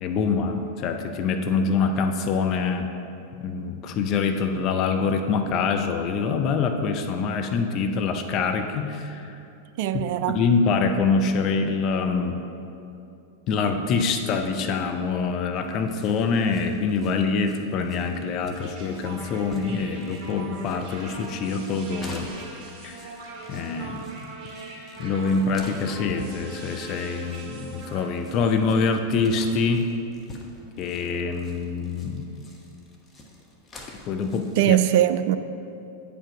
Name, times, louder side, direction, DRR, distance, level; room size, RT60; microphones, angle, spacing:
voice 1, 0.0-2.9 3.4-9.4 9.9-12.4 13.5-22.3 22.8-23.1 23.5-24.2 25.0-29.9 30.8-32.2 33.9-34.8, left 4 dB, 35° left, 6 dB, 0.5 m, -25 dB
voice 2, 9.8-10.4 34.6-35.4, right 12 dB, 50° right, 11 dB, 0.3 m, -21 dB
sound 1, 15.6-34.6, left 1 dB, 20° left, 1.0 m, -48 dB
sound 2, 18.6-28.1, right 3 dB, 30° right, 2.0 m, -41 dB
8.6 x 5.1 x 5.0 m, 2.7 s
figure-of-eight pair, 90°, 0 cm